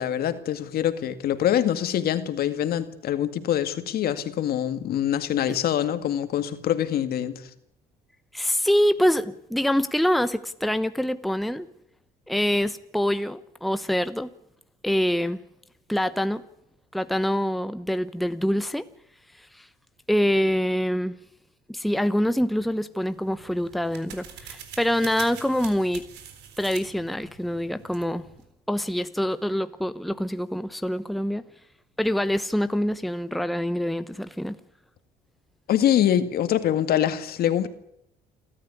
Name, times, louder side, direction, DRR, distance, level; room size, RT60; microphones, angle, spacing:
voice 1, 0.0-7.5 35.7-37.7, left 10 dB, 65° left, 2.2 m, -24 dB
voice 2, 8.3-11.7 12.3-14.3 14.8-15.4 15.9-16.4 16.9-18.9 19.5-19.7 20.1-21.2 21.7-26.1 26.6-28.3 28.7-31.4 32.0-34.6, equal, ahead, 1.0 m, -25 dB
sound 1, 23.1-28.5, right 8 dB, 80° right, 4.0 m, -44 dB
28.5 x 13.0 x 9.8 m
cardioid pair, 110°, 17 cm